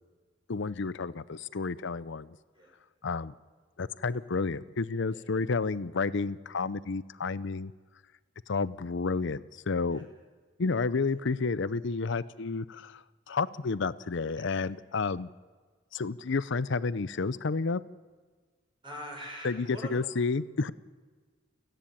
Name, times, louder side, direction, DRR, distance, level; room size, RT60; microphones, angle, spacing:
voice 1, 0.5-2.4 3.0-3.3 3.8-7.7 8.5-9.4 9.7-10.1 10.6-15.3 15.9-17.8 19.4-20.7, left 4 dB, 65° left, 17 dB, 0.6 m, -31 dB
voice 2, 18.8-20.0, equal, 25° right, 0 dB, 5.8 m, -43 dB
29.0 x 10.5 x 8.8 m, 1.4 s
head